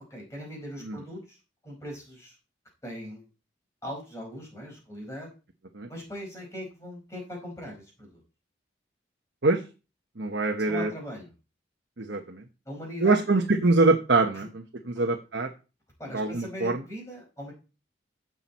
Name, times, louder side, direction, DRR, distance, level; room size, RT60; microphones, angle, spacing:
voice 1, 0.1-1.4 1.6-2.4 2.8-3.2 3.8-5.3 5.9-8.2 10.7-11.3 12.6-13.2 16.0-17.5, equal, 15° left, -1 dB, 5.1 m, -40 dB
voice 2, 10.2-10.9 12.0-12.4 13.0-15.5 16.1-16.8, right 3 dB, 70° right, 3 dB, 1.1 m, -24 dB
15.0 x 6.1 x 4.2 m, 0.32 s
head